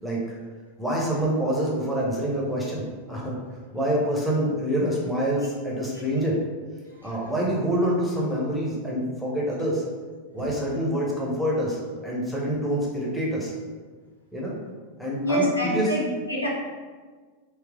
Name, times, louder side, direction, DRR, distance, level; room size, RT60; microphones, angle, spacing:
voice 1, 0.8-2.8 3.1-3.3 3.7-6.4 7.0-9.8 10.3-13.5 14.3-14.5 15.0-15.9, right 1 dB, ahead, -5 dB, 1.0 m, -26 dB
voice 2, 15.2-16.5, equal, 80° left, -3 dB, 0.8 m, -26 dB
3.3 x 2.9 x 3.7 m, 1.4 s
figure-of-eight pair, 90°, 0 cm